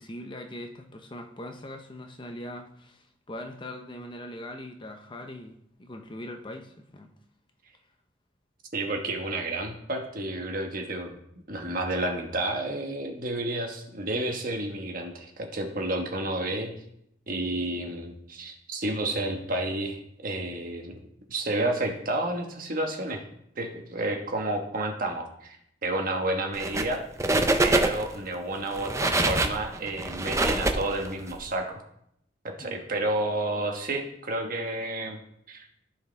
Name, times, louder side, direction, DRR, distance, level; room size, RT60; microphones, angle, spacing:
voice 1, 0.0-7.1 16.5-16.7 24.1-24.2 32.6-32.8, left 1 dB, 25° left, 4 dB, 0.7 m, -41 dB
voice 2, 8.7-11.2 11.5-16.7 17.3-21.0 21.3-23.2 23.6-25.6 25.8-27.0 27.6-31.8 32.4-35.2 35.5-35.6, right 2 dB, 50° right, 3 dB, 1.3 m, -30 dB
sound 1, 26.5-26.9 27.2-28.2 28.7-31.3, right 2 dB, 15° right, 0.5 m, -25 dB
14.5 x 4.8 x 3.4 m, 0.74 s
head